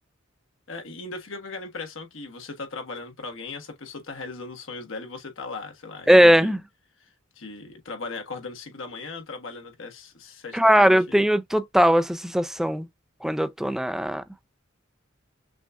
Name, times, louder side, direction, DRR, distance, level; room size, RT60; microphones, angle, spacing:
voice 1, 0.7-6.5 7.0-7.1 7.3-11.2, left 3 dB, 75° left, 1.3 m, -38 dB
voice 2, 6.1-6.6 10.5-12.9 13.2-14.2, equal, ahead, 0.3 m, -19 dB
6.2 x 2.5 x 2.3 m
head